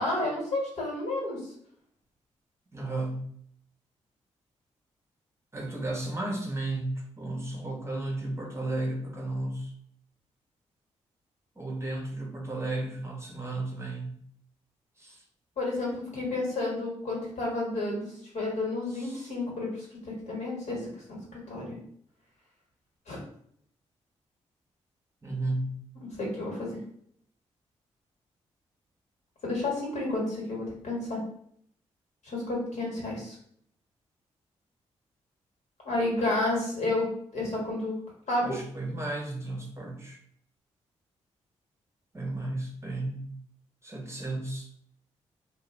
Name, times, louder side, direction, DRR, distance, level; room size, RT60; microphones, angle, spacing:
voice 1, 0.0-1.4 15.6-21.8 23.1-23.2 26.2-26.7 29.4-31.2 32.2-33.3 35.8-37.9 38.3-38.5, left 2 dB, 65° left, -3 dB, 1.3 m, -31 dB
voice 2, 2.7-3.3 5.5-9.7 11.6-14.2 15.0-15.2 18.9-19.3 25.2-25.8 38.4-40.2 42.1-43.3 43.8-44.7, right 2 dB, 20° right, 0 dB, 0.8 m, -34 dB
2.4 x 2.2 x 3.0 m, 0.65 s
supercardioid pair, 45°, 13 cm